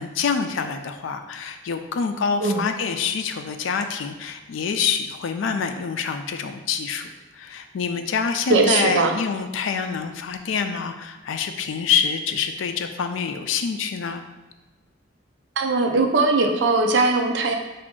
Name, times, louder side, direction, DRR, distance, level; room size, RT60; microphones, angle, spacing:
voice 1, 0.0-7.1 7.3-14.2, left 6 dB, 80° left, 7 dB, 0.4 m, -26 dB
voice 2, 8.5-9.1 15.6-17.5, right 3 dB, 65° right, 4 dB, 0.5 m, -20 dB
4.9 x 2.5 x 3.6 m, 1.2 s
head